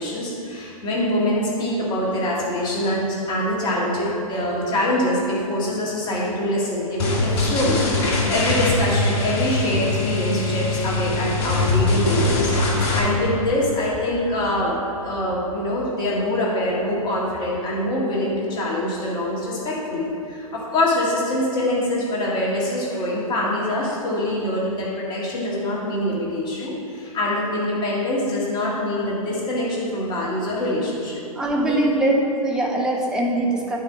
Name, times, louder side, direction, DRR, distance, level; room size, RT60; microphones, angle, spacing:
voice 1, 0.0-31.2 31.7-31.8, left 1 dB, 25° left, -5 dB, 2.0 m, -24 dB
sound 1, 7.0-13.0, left 2 dB, 45° left, 1.8 m, -22 dB
voice 2, 31.3-33.8, right 1 dB, 5° right, -2 dB, 1.0 m, -22 dB
9.1 x 4.6 x 5.9 m, 2.5 s
figure-of-eight pair, 115°, 19 cm